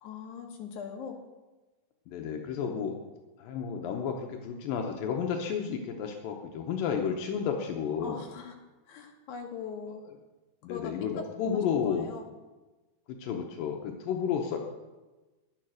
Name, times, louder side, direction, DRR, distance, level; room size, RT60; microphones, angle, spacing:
voice 1, 0.0-1.2 8.0-8.6 8.9-10.1 10.7-11.3 11.5-12.2, left 6 dB, 65° left, 1 dB, 2.6 m, -41 dB
voice 2, 2.1-3.0 3.4-8.2 10.6-12.1 13.2-14.6, left 7 dB, 80° left, 2 dB, 2.5 m, -32 dB
10.5 x 9.0 x 6.3 m, 1.2 s
omnidirectional pair, 4.1 m